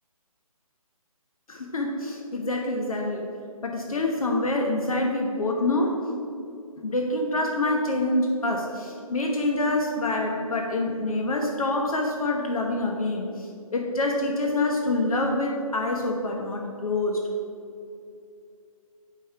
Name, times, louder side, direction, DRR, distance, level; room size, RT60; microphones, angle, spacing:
voice 1, 1.5-3.3 3.6-6.0 6.8-17.2, left 2 dB, 70° left, 1 dB, 1.1 m, -26 dB
7.5 x 5.3 x 5.6 m, 2.6 s
hypercardioid pair, 165°, 19 cm